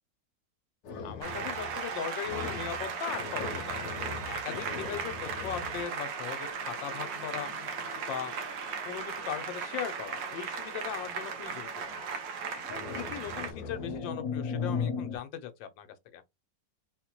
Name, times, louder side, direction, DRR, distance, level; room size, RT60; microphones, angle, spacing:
sound 1, 0.8-2.0 2.2-9.2 10.1-10.4 12.6-15.2, left 5 dB, 65° left, 1.1 m, -39 dB
voice 1, 1.0-3.8 4.3-7.5 8.1-8.3 8.8-12.1 12.5-16.2, left 9 dB, 85° left, 1.4 m, -39 dB
Applause, 1.2-13.5, right 5 dB, 80° right, 1.4 m, -37 dB
3.9 x 2.1 x 2.9 m
omnidirectional pair, 2.0 m